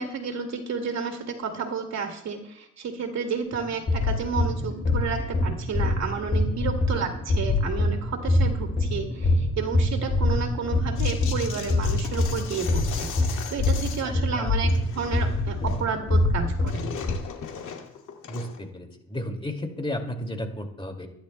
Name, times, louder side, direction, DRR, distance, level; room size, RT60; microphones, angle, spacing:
voice 1, 0.0-16.8, right 5 dB, 60° right, 4 dB, 2.3 m, -31 dB
sound 1, 3.5-17.1, left 2 dB, 35° left, 2.4 m, -25 dB
sound 2, 11.0-14.2 14.5-15.9 16.1-18.7, left 7 dB, 80° left, 2.2 m, -38 dB
voice 2, 14.0-14.5 18.3-21.1, left 1 dB, 15° left, 4 dB, 2.2 m, -34 dB
25.0 x 10.5 x 2.2 m, 0.88 s
cardioid pair, 90°, 30 cm